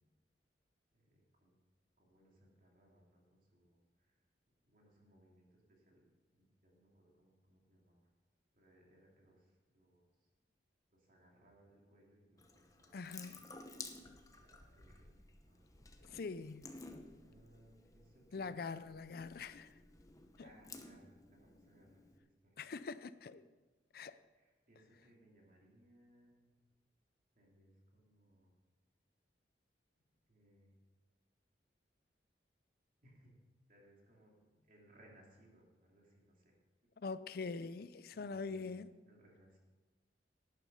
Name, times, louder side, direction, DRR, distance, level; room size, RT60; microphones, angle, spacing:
voice 1, 0.9-1.6 2.0-4.2 4.6-8.1 8.5-10.3 10.9-13.2 14.2-15.7 16.0-16.1 17.2-18.9 20.4-22.6 24.3-26.5 27.3-28.5 30.3-30.7 33.0-33.4 33.7-36.5 38.1-38.6 39.0-39.6, right 1 dB, 50° right, 2.9 m, -67 dB
Water tap faucet / Sink (filling or washing) / Drip, 12.4-22.2, left 3 dB, 20° left, 0.8 m, -55 dB
voice 2, 12.9-13.4 16.0-16.7 18.3-19.8 20.4-20.5 22.6-23.5 23.9-24.2 37.0-38.9, left 4 dB, 55° left, 0.5 m, -44 dB
11.5 x 9.2 x 5.5 m
head